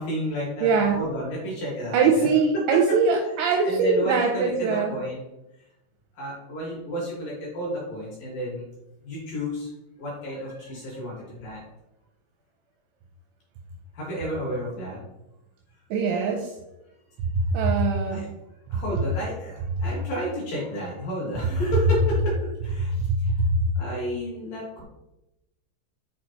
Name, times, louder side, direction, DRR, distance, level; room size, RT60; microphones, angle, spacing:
voice 1, 0.0-2.3 2.5-3.0 3.7-5.2 6.1-8.7 9.0-9.7 10.0-11.7 13.9-15.0 18.1-18.3 18.7-22.4 22.6-23.5 23.7-24.8, equal, 60° left, -5 dB, 2.6 m, -31 dB
voice 2, 0.6-1.0 1.9-4.9 15.9-16.5 17.5-18.3 23.0-23.1 23.4-23.5, right 4 dB, 85° right, 1 dB, 2.7 m, -22 dB
7.5 x 4.5 x 4.3 m, 0.95 s
omnidirectional pair, 6.0 m